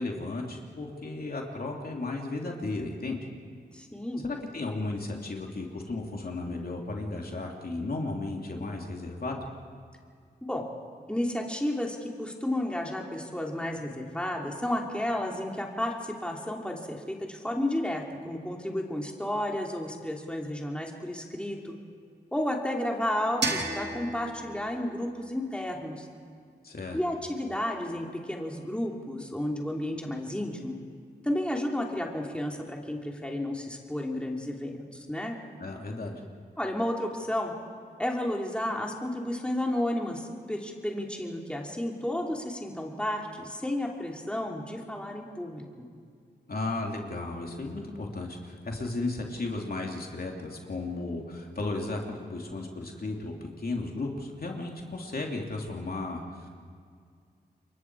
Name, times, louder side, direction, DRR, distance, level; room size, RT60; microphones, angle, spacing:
voice 1, 0.0-3.3 4.2-9.4 26.6-27.0 35.6-36.2 46.5-56.5, left 2 dB, 60° left, 0 dB, 2.9 m, -34 dB
voice 2, 3.7-4.2 10.4-10.7 11.1-21.7 22.3-26.1 26.9-30.8 31.2-35.4 36.6-37.5 38.0-45.6, left 1 dB, 5° left, 0 dB, 3.1 m, -32 dB
sound 1, 23.4-26.2, right 3 dB, 85° right, 2.6 m, -35 dB
29.0 x 23.0 x 4.8 m, 2.1 s
cardioid pair, 65°, 18 cm